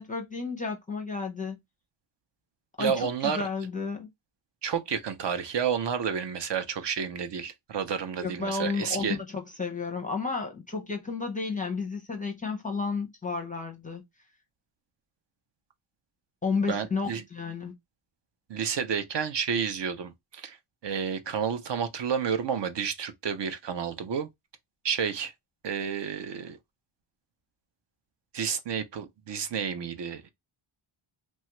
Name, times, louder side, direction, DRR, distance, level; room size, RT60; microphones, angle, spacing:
voice 1, 0.0-1.6 2.8-4.1 8.2-14.0 16.4-17.7, left 4 dB, 15° left, 0.5 m, -32 dB
voice 2, 2.8-3.5 4.6-9.2 16.7-17.2 18.5-20.6 20.8-24.3 24.8-25.3 25.6-26.6 28.3-30.3, right 7 dB, 60° right, 0.5 m, -30 dB
3.2 x 2.3 x 2.8 m
wide cardioid pair, 175°, 50 cm